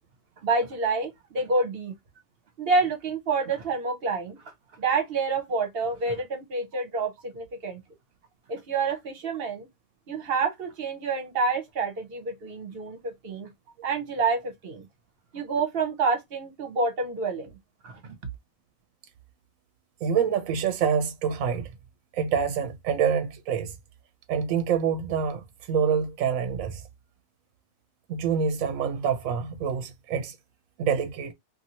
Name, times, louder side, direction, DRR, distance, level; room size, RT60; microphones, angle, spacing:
voice 1, 0.4-1.9 2.6-7.8 8.5-9.7 10.1-13.5 13.8-14.9 15.3-17.5 17.8-18.2, right 4 dB, 50° right, 1.0 m, -28 dB
voice 2, 20.0-21.7 22.1-23.7 24.3-26.8 28.1-30.3 30.8-31.3, right 7 dB, 80° right, 1.0 m, -26 dB
2.8 x 2.6 x 2.6 m
omnidirectional pair, 1.4 m